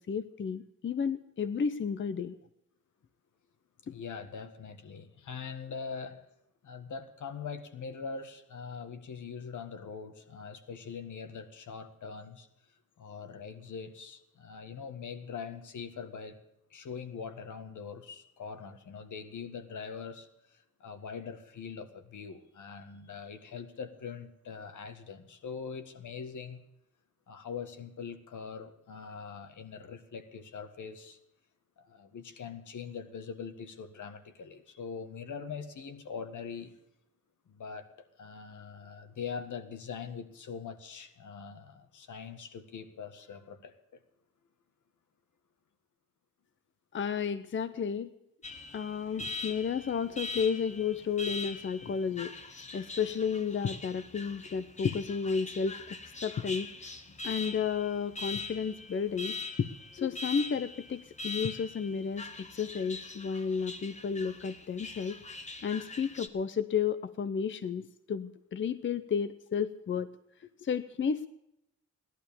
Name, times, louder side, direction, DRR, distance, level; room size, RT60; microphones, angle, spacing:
voice 1, 0.0-2.4 46.9-48.1 48.7-52.3 52.7-56.7 57.2-59.7 59.9-65.2 65.6-70.1 70.4-71.3, left 6 dB, 40° left, 12 dB, 0.7 m, -32 dB
voice 2, 3.8-6.2 6.6-12.5 13.0-16.4 16.7-26.6 27.3-31.2 31.8-36.7 37.5-37.9 38.2-43.7, left 6 dB, 80° left, 8 dB, 1.8 m, -42 dB
Alarm, 48.4-66.3, left 3 dB, 25° left, 1.3 m, -42 dB
17.0 x 11.5 x 7.0 m, 0.82 s
wide cardioid pair, 160°, 30 cm